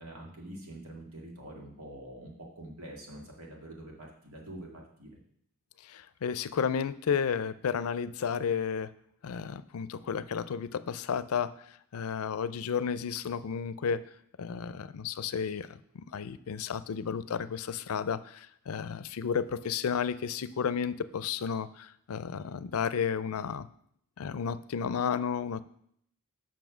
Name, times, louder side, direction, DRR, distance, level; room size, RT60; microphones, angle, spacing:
voice 1, 0.0-5.1, right 1 dB, 85° right, -1 dB, 2.1 m, -45 dB
voice 2, 5.8-8.9 9.2-11.5 11.9-14.0 14.4-15.7 15.9-23.7 24.2-25.6, left 7 dB, 90° left, 15 dB, 0.4 m, -32 dB
7.1 x 5.9 x 6.1 m, 0.68 s
head